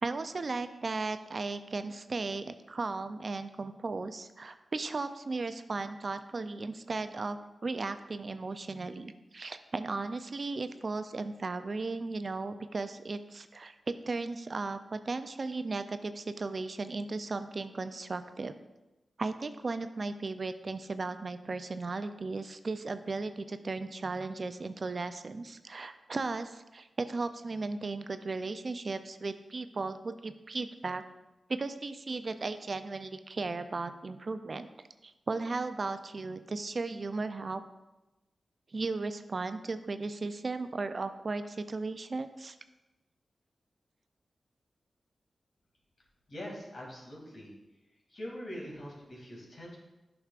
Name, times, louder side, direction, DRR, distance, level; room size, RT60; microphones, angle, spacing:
voice 1, 0.0-18.5 19.2-31.0 31.5-34.7 35.0-37.6 38.7-42.6, right 3 dB, 55° right, 10 dB, 0.4 m, -36 dB
voice 2, 46.3-47.5 48.1-49.8, equal, 60° left, -3 dB, 2.5 m, -43 dB
9.8 x 6.0 x 2.4 m, 1.0 s
cardioid pair, 45°, 0 cm